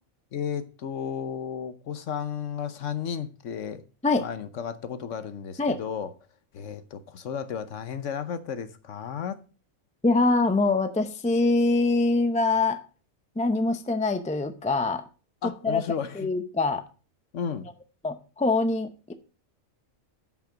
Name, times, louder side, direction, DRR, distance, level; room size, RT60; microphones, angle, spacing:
voice 1, 0.3-3.8 4.2-6.1 6.5-9.4 15.4-16.3 17.3-17.7, left 7 dB, 60° left, 1.1 m, -33 dB
voice 2, 10.0-12.8 13.4-15.0 15.6-15.8 16.2-16.8 18.0-19.1, left 3 dB, 10° left, 0.5 m, -24 dB
10.5 x 5.8 x 5.0 m
omnidirectional pair, 1.5 m